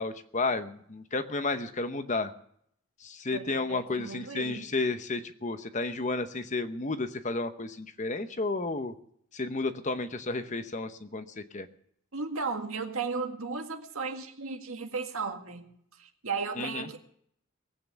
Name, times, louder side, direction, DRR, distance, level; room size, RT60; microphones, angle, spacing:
voice 1, 0.0-2.3 3.0-8.9 9.3-11.7 16.6-16.9, left 3 dB, 35° left, 10 dB, 0.9 m, -32 dB
voice 2, 3.3-4.6 12.1-15.7 16.0-17.0, right 4 dB, 80° right, 5 dB, 2.0 m, -35 dB
19.0 x 8.7 x 6.9 m, 0.68 s
head